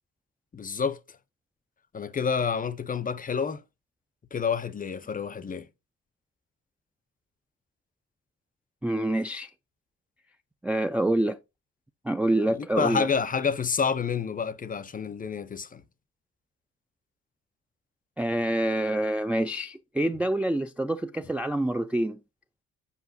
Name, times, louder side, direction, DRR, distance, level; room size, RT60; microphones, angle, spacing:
voice 1, 0.5-1.0 1.9-3.6 4.3-5.7 12.5-15.8, left 6 dB, 30° left, 0.6 m, -28 dB
voice 2, 8.8-9.5 10.6-11.4 12.0-13.1 18.2-22.2, right 1 dB, 5° right, 0.3 m, -26 dB
8.2 x 4.9 x 2.6 m
cardioid pair, 90°, 30 cm